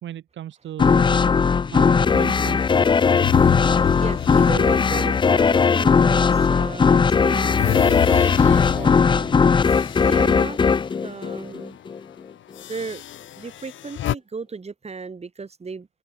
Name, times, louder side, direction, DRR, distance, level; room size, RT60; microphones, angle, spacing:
voice 1, 0.0-1.2 1.7-2.9, right 11 dB, 70° right, 2.1 m, -35 dB
sound 1, 0.8-12.0, left 5 dB, 25° left, 0.4 m, -18 dB
sound 2, 3.1-6.4 6.9-11.2 11.5-11.7 12.5-14.1, left 12 dB, 75° left, 3.4 m, -30 dB
voice 2, 3.5-10.6 11.0-11.8 12.7-13.0 13.4-15.9, right 4 dB, 30° right, 7.5 m, -35 dB
cardioid pair, 90°, 20 cm